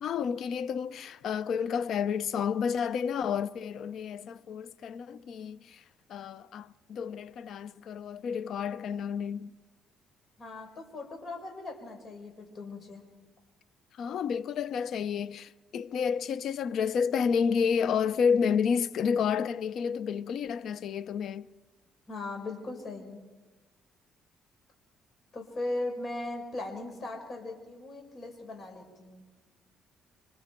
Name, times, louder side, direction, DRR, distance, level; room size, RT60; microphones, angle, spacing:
voice 1, 0.0-5.8 6.1-9.5 14.0-21.5, left 6 dB, 65° left, 0.7 m, -30 dB
voice 2, 10.4-13.1 22.1-23.2 25.3-29.3, left 2 dB, 40° left, 5.0 m, -38 dB
27.0 x 25.0 x 4.5 m
cardioid pair, 110°, 0 cm